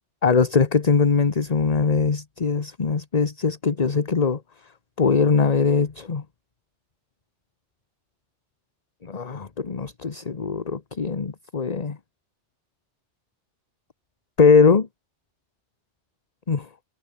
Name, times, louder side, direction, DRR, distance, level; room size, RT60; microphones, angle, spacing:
voice 1, 0.2-4.4 5.0-6.2 9.0-12.0 14.4-14.9 16.5-16.7, left 5 dB, 35° left, 1.2 m, -21 dB
omnidirectional pair, 1.2 m